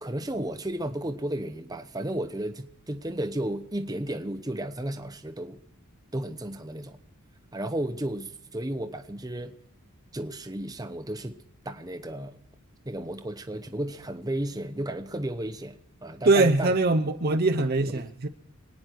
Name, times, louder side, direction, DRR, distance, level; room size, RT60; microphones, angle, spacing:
voice 1, 0.0-5.6 6.1-7.0 7.5-9.6 10.1-11.4 11.6-12.4 12.8-16.7 17.8-18.0, right 1 dB, 15° right, 0.9 m, -33 dB
voice 2, 16.2-18.3, right 2 dB, 45° right, 0.7 m, -22 dB
26.5 x 9.7 x 4.6 m
head